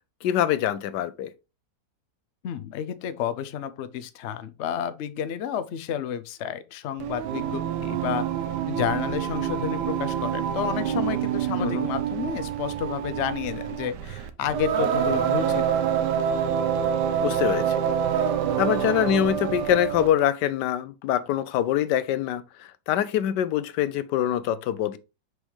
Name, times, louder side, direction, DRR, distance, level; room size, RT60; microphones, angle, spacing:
voice 1, 0.2-1.3 11.6-11.9 17.2-17.8 18.6-25.0, left 11 dB, 90° left, 1.3 m, -24 dB
voice 2, 2.4-8.3 8.7-15.8, left 9 dB, 60° left, 0.8 m, -31 dB
Singing, 7.0-20.2, right 9 dB, 80° right, 1.3 m, -26 dB
6.3 x 5.4 x 3.2 m
omnidirectional pair, 1.8 m